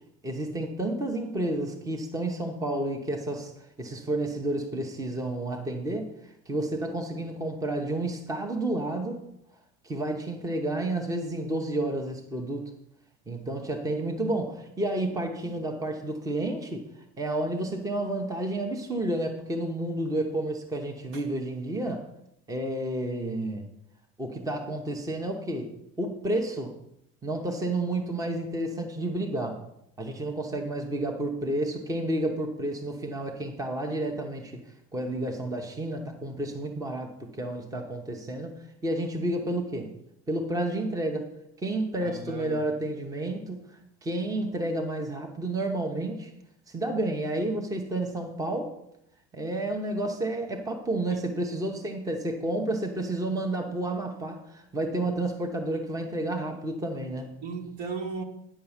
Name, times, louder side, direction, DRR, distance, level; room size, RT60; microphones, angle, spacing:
voice 1, 0.2-9.2 9.8-12.6 13.3-22.0 22.5-23.6 24.2-26.7 27.2-29.6 30.0-34.6 34.9-38.5 38.8-39.9 40.3-41.3 41.6-46.3 46.7-48.7 49.3-57.4, right 1 dB, 10° right, 3 dB, 0.9 m, -31 dB
voice 2, 42.0-42.6 51.1-51.2 57.4-58.2, right 4 dB, 60° right, 4 dB, 1.7 m, -36 dB
9.9 x 4.6 x 7.2 m, 0.78 s
cardioid pair, 140°, 35 cm